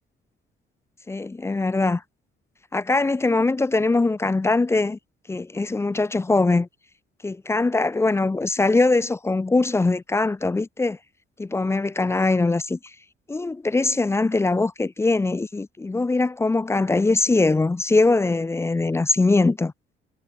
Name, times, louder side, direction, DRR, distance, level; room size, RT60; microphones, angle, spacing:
voice 1, 1.1-2.0 2.7-5.0 5.3-6.7 7.2-11.0 11.4-12.8 13.3-19.7, left 3 dB, 15° left, 0.4 m, -22 dB
cardioid pair, 90°, 20 cm